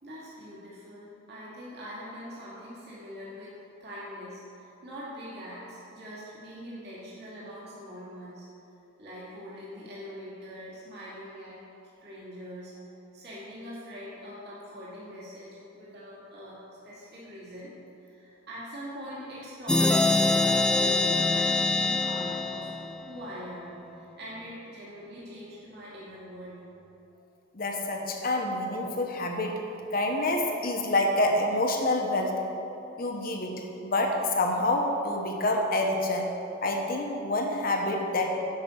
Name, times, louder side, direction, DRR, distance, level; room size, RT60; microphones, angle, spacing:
voice 1, 0.0-3.5 3.8-8.5 9.0-11.6 12.0-16.6 16.8-17.7 18.1-22.7 23.1-26.6, equal, 50° right, -8 dB, 2.4 m, -43 dB
sound 1, 19.7-23.2, left 2 dB, 5° left, 0.4 m, -24 dB
voice 2, 27.5-29.6 29.9-32.4 33.0-36.3 36.6-38.3, left 1 dB, 45° left, 2 dB, 1.1 m, -27 dB
10.5 x 5.6 x 6.4 m, 2.9 s
head